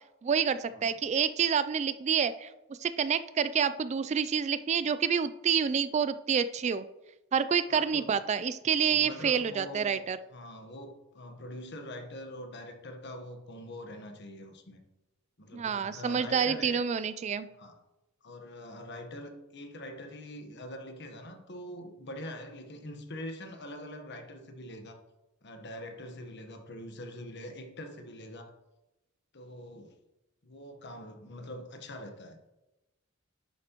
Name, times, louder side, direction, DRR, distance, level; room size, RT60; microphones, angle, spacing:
voice 1, 0.2-6.9 7.3-10.2 15.5-17.5, right 7 dB, 35° right, 13 dB, 0.3 m, -28 dB
voice 2, 7.7-8.1 8.7-14.8 15.4-16.8 17.6-17.8 18.2-25.0 25.4-28.5 29.3-29.9 30.4-32.4, left 1 dB, 55° left, 5 dB, 1.2 m, -44 dB
11.0 x 7.5 x 3.0 m, 1.0 s
head